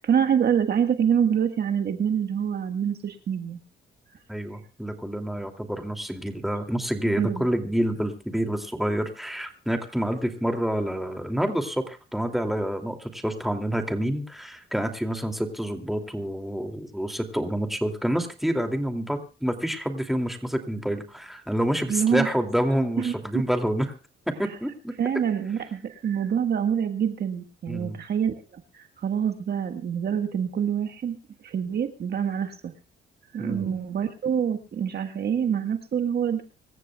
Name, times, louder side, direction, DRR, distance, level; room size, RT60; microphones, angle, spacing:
voice 1, 0.0-3.6 7.2-7.5 21.9-22.3 23.0-23.1 25.0-31.2 31.4-32.7 33.3-36.4, right 8 dB, 55° right, 6 dB, 1.6 m, -26 dB
voice 2, 4.3-23.9 24.3-24.9 27.7-28.0 33.4-33.7, equal, ahead, 4 dB, 2.7 m, -28 dB
25.5 x 14.5 x 2.4 m, 0.33 s
cardioid pair, 90°, 20 cm